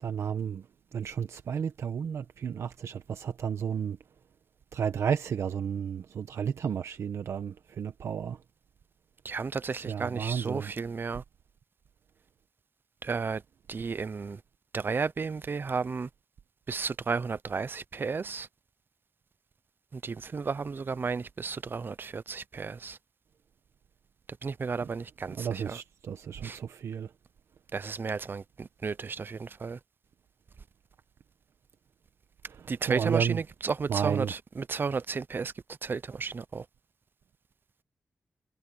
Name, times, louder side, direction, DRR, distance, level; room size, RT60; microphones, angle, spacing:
voice 1, 0.0-0.6 0.9-4.0 4.7-8.4 9.8-10.7 25.3-27.1 32.5-33.4 33.9-34.3, right 7 dB, 85° right, 1.1 m, -32 dB
voice 2, 9.2-11.2 13.0-13.4 13.7-14.4 14.7-16.1 16.7-18.5 19.9-23.0 24.4-25.8 26.4-26.6 27.7-29.8 32.7-35.5 35.8-36.7, right 5 dB, 50° right, 0.7 m, -33 dB
cardioid pair, 80°, 5 cm